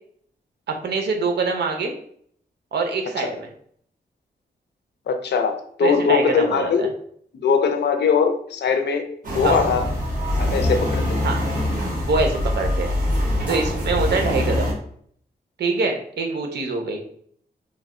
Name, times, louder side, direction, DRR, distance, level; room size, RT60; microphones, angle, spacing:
voice 1, 0.7-1.9 2.7-3.5 5.8-6.9 9.4-9.5 11.2-11.4 12.0-13.0 13.5-14.7 15.6-17.0, right 3 dB, 75° right, 3 dB, 0.7 m, -24 dB
voice 2, 5.1-6.9 7.4-9.9 10.4-11.2, left 5 dB, 80° left, 6 dB, 0.5 m, -21 dB
sound 1, 9.2-14.7, left 1 dB, 50° right, 1.3 m, -23 dB
3.3 x 2.2 x 3.6 m, 0.63 s
wide cardioid pair, 125°, 17 cm